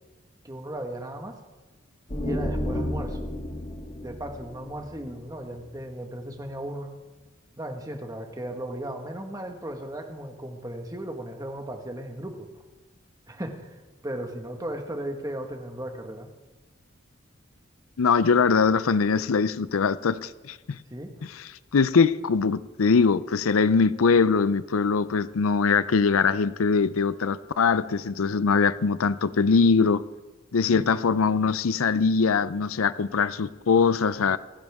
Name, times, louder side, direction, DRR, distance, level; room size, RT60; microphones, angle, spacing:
voice 1, 0.4-1.4 2.2-3.2 4.0-6.9 7.6-12.5 13.3-13.8 14.0-16.3 20.9-21.1 30.7-30.9, right 1 dB, 15° right, 4 dB, 1.6 m, -36 dB
sound 1, 2.1-5.7, left 1 dB, 35° left, 2.2 m, -32 dB
voice 2, 18.0-20.8 21.7-30.0 30.5-34.4, left 5 dB, 90° left, 16 dB, 0.5 m, -22 dB
27.5 x 10.5 x 3.6 m, 1.2 s
head